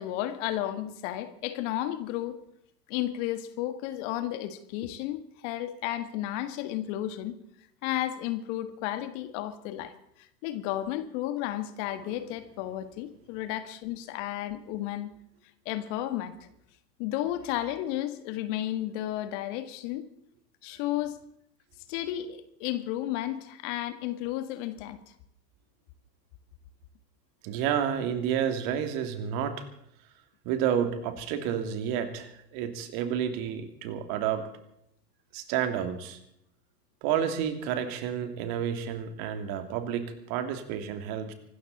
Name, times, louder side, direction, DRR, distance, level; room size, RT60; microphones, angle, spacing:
voice 1, 0.0-2.4 2.9-7.3 7.8-9.9 10.2-15.1 15.7-16.4 17.0-20.1 20.6-21.2 21.9-25.0, left 13 dB, 45° left, 11 dB, 1.8 m, -33 dB
voice 2, 27.4-29.6 30.4-34.5 35.3-36.2 37.0-41.3, right 9 dB, 45° right, 7 dB, 2.9 m, -30 dB
25.0 x 13.0 x 4.2 m, 0.75 s
hypercardioid pair, 105°, 49 cm